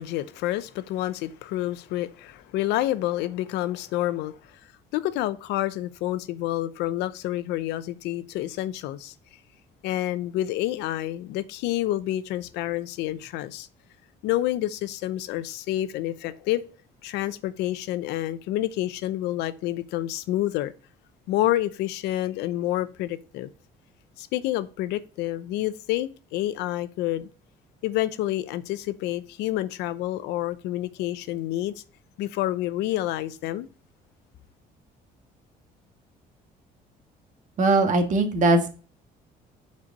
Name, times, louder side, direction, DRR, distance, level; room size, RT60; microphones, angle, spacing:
voice 1, 0.0-4.6 4.9-9.1 9.8-13.7 14.2-16.7 17.0-20.7 21.3-23.5 24.2-27.3 27.8-31.7 32.2-33.7, left 14 dB, 90° left, 0.7 m, -28 dB
voice 2, 37.6-38.7, right 2 dB, 45° right, 1.5 m, -20 dB
6.0 x 4.4 x 6.4 m
cardioid pair, 110°, 17 cm